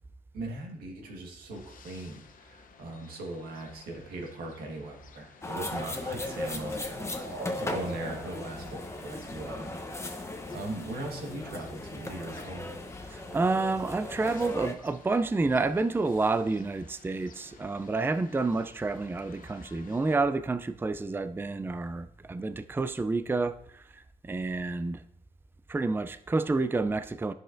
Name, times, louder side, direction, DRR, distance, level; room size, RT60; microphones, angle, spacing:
voice 1, 0.3-12.7, right 2 dB, 90° right, 1.6 m, -40 dB
sound 1, 1.5-20.2, left 6 dB, 70° left, 0.8 m, -55 dB
sound 2, 5.3-9.9, right 2 dB, 65° right, 2.4 m, -45 dB
sound 3, 5.4-14.7, left 2 dB, 20° left, 0.9 m, -37 dB
voice 2, 13.1-25.0 25.7-27.3, right 3 dB, 15° right, 0.4 m, -29 dB
10.0 x 6.5 x 2.6 m
cardioid pair, 65°, 15 cm